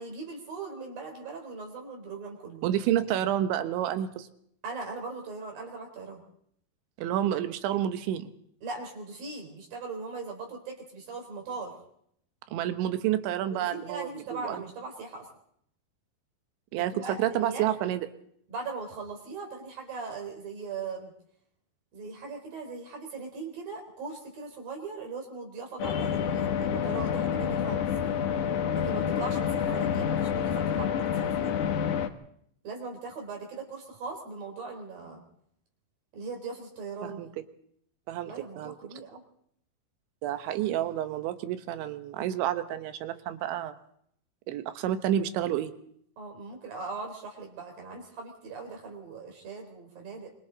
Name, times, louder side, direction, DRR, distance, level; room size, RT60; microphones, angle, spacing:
voice 1, 0.0-2.7 4.6-6.2 8.6-11.8 13.5-15.3 16.7-17.7 18.5-21.1 21.9-27.8 28.7-31.6 32.6-35.2 36.1-37.2 38.3-39.2 46.2-50.3, right 4 dB, 50° right, 2 dB, 5.3 m, -39 dB
voice 2, 2.6-4.3 7.0-8.3 12.5-14.6 16.7-18.1 29.7-29.8 37.0-37.3 38.1-38.7 40.2-43.8 44.5-45.7, right 11 dB, 75° right, 10 dB, 3.3 m, -29 dB
sound 1, 25.8-32.1, left 8 dB, 90° left, 1.7 m, -28 dB
26.0 x 25.5 x 4.0 m, 0.67 s
omnidirectional pair, 5.7 m